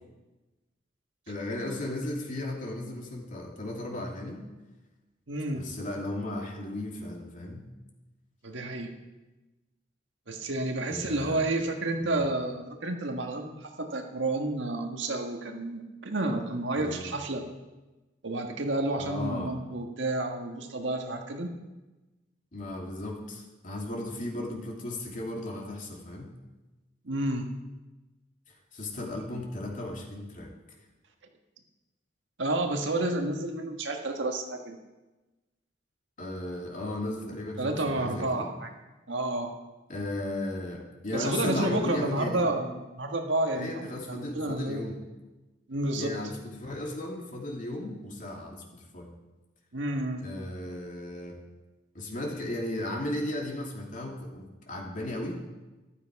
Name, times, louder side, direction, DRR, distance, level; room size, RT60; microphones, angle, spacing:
voice 1, 1.3-4.5 5.5-7.7 10.9-11.6 12.0-12.2 16.8-17.1 19.0-19.5 22.5-26.3 28.5-30.5 36.2-38.5 39.9-42.4 43.6-45.0 46.0-49.1 50.2-51.4 51.9-55.4, left 1 dB, 45° left, 0 dB, 2.7 m, -35 dB
voice 2, 5.3-5.6 8.4-9.0 10.3-17.5 18.2-21.5 27.0-27.5 32.4-34.8 37.6-38.7 39.1-39.5 41.1-44.8 45.7-46.2 49.7-50.3, right 2 dB, 90° right, 3 dB, 1.6 m, -30 dB
13.5 x 12.5 x 4.8 m, 1.1 s
head